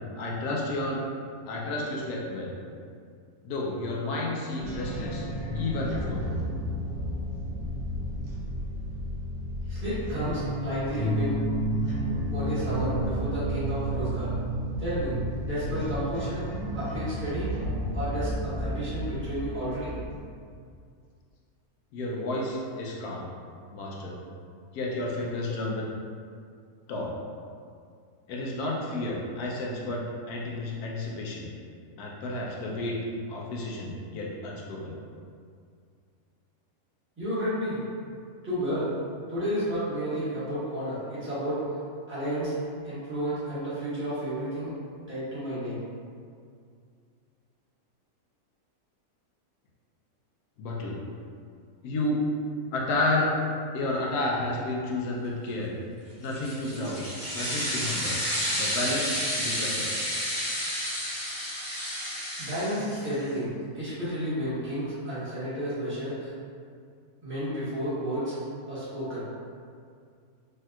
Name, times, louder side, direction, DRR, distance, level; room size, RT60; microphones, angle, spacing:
voice 1, 0.2-1.0 1.5-2.5 3.4-5.2 5.5-6.4 21.9-23.3 23.7-24.2 24.7-25.9 26.9-27.1 28.3-31.5 32.0-33.0 33.3-35.0 50.6-51.0 51.8-52.2 52.7-53.3 53.7-55.7 56.2-57.0 57.3-58.2 58.5-59.9, left 2 dB, 85° left, -3 dB, 1.1 m, -31 dB
sound 1, 4.6-20.2, equal, 85° right, 1.1 m, -31 dB
voice 2, 9.7-11.4 12.3-14.3 14.8-15.1 15.4-16.4 16.7-17.5 17.9-19.9 37.2-37.8 38.4-38.9 39.3-41.6 42.1-42.5 42.8-44.7 45.1-45.8 62.4-66.3 67.2-68.3 68.7-69.2, equal, 10° right, -13 dB, 0.8 m, -31 dB
sound 2, 56.2-63.2, equal, 35° left, 0.9 m, -31 dB
3.3 x 2.7 x 2.3 m, 2.2 s
omnidirectional pair, 1.6 m